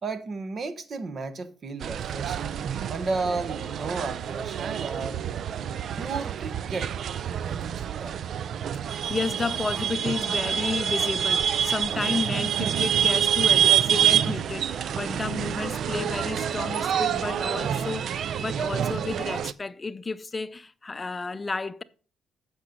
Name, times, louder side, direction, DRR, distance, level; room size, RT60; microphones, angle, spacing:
voice 1, 0.0-2.6 2.9-5.2 5.6-6.9 7.4-8.1, right 3 dB, 45° right, 1.1 m, -33 dB
sound 1, 1.8-19.5, right 9 dB, 65° right, 0.4 m, -27 dB
voice 2, 8.8-21.8, left 4 dB, 25° left, 0.5 m, -32 dB
8.3 x 6.2 x 5.3 m
cardioid pair, 90°, 0 cm